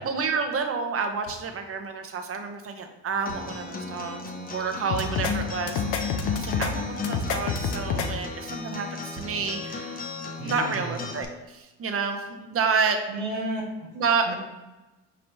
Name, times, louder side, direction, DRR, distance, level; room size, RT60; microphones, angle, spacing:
voice 1, 0.0-10.0 10.4-13.0 13.9-14.3, right 5 dB, 40° right, 5 dB, 0.7 m, -29 dB
sound 1, 1.3-1.5 3.3-3.6 5.2-5.5 7.1-7.4 9.1-9.4, right 3 dB, 55° right, 1.5 m, -42 dB
Acoustic guitar, 3.3-11.2, left 5 dB, 25° left, 0.7 m, -35 dB
sound 2, 4.9-5.3 5.7-6.7 7.0-8.1, left 6 dB, 75° left, 0.6 m, -27 dB
voice 2, 10.4-11.0 13.1-13.9 14.3-14.4, right 1 dB, 75° right, -5 dB, 1.0 m, -32 dB
5.1 x 3.0 x 3.0 m, 1.1 s
hypercardioid pair, 65°, 36 cm